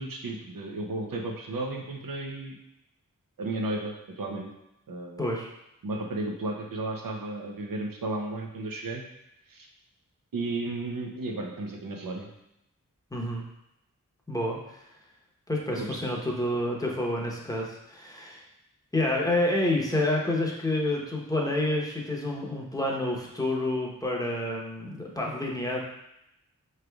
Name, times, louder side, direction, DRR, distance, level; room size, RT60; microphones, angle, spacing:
voice 1, 0.0-2.6 3.4-4.5 4.9-5.3 5.8-9.0 9.5-9.7 10.3-12.3 15.7-15.9, right 2 dB, 85° right, 1 dB, 0.7 m, -33 dB
voice 2, 5.2-5.5 13.1-13.4 14.3-14.9 15.5-18.4 18.9-25.8, left 1 dB, 10° left, -2 dB, 0.9 m, -28 dB
4.9 x 3.2 x 2.3 m, 0.86 s
wide cardioid pair, 45°, 33 cm